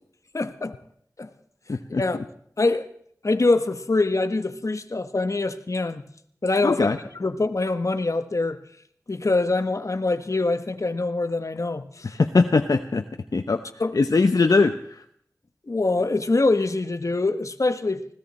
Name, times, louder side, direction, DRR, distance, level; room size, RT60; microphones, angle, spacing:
voice 1, 0.3-0.8 1.2-1.3 2.0-2.2 2.6-2.9 3.2-6.0 6.4-6.9 7.1-8.6 9.1-12.1 13.8-14.0 15.7-18.1, left 2 dB, 55° left, 1.3 m, -24 dB
voice 2, 1.7-2.0 6.6-7.0 12.0-13.0 13.3-13.6 13.9-15.0, left 3 dB, 70° left, 0.8 m, -21 dB
20.5 x 16.5 x 4.3 m
cardioid pair, 40°, 6 cm